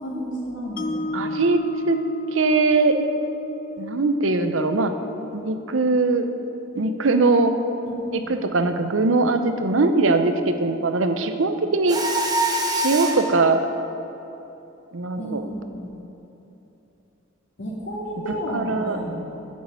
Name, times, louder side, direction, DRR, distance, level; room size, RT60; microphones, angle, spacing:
voice 1, 0.0-1.4 7.8-8.3 15.2-15.9 17.6-19.2, equal, 65° left, -4 dB, 2.6 m, -32 dB
Mallet percussion, 0.8-6.9, left 2 dB, 45° left, 0.4 m, -34 dB
voice 2, 1.1-1.6 1.9-2.0 2.3-2.9 3.8-4.9 5.3-6.3 6.7-7.5 8.1-12.0 12.7-13.7 14.9-15.5 18.3-19.0, right 3 dB, 70° right, 8 dB, 0.7 m, -21 dB
Mechanisms, 11.9-13.3, right 1 dB, 20° right, 0.9 m, -24 dB
9.4 x 6.5 x 8.3 m, 3.0 s
head